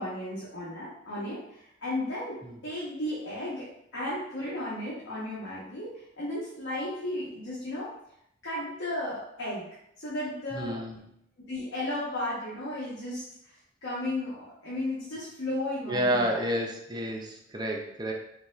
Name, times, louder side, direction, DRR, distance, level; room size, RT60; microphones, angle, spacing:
voice 1, 0.0-2.4 2.6-3.7 3.9-7.9 8.4-9.7 10.0-10.8 11.5-16.4, left 1 dB, 85° left, -9 dB, 1.2 m, -34 dB
voice 2, 10.5-11.0 15.9-18.1, equal, 25° right, 1 dB, 0.5 m, -30 dB
4.8 x 2.8 x 2.5 m, 0.76 s
head